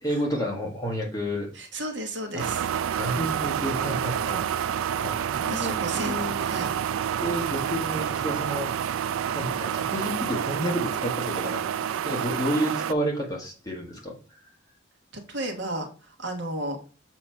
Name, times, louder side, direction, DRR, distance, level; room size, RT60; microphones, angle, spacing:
voice 1, 0.0-1.5 2.3-2.4 3.0-4.5 5.0-6.4 7.2-8.7 9.3-14.2, equal, 15° left, -1 dB, 1.5 m, -30 dB
voice 2, 1.5-2.7 5.5-6.1 6.4-6.7 15.1-15.9 16.2-16.8, right 1 dB, 60° right, 3 dB, 1.2 m, -32 dB
sound 1, 2.4-12.9, right 9 dB, 85° right, 0.3 m, -28 dB
7.0 x 3.0 x 5.4 m, 0.36 s
head